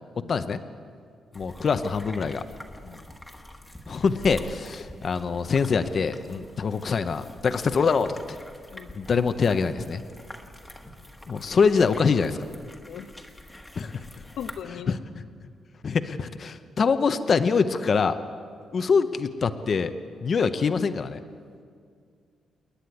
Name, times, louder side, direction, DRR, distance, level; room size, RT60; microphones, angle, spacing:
voice 1, 0.3-0.6 1.3-2.4 3.9-8.4 8.9-10.0 11.3-12.5 13.8-14.0 14.9-15.0 15.8-18.2 18.7-19.9 20.2-21.2, left 5 dB, 35° left, 10 dB, 0.7 m, -24 dB
sound 1, 1.3-14.6, left 1 dB, 5° left, 1.4 m, -45 dB
voice 2, 14.4-14.9, left 9 dB, 80° left, 9 dB, 0.9 m, -38 dB
28.5 x 10.0 x 9.4 m, 2.2 s
wide cardioid pair, 170°, 0 cm